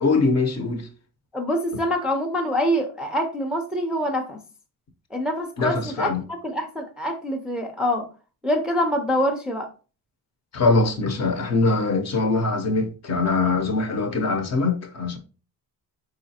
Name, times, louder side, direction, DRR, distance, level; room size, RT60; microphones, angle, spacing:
voice 1, 0.0-0.9 5.6-6.2 10.5-15.2, left 3 dB, 45° left, 0.7 m, -22 dB
voice 2, 1.3-4.4 5.1-8.0 8.4-9.7, equal, ahead, 0.4 m, -25 dB
4.9 x 3.9 x 2.7 m
cardioid pair, 160°, 39 cm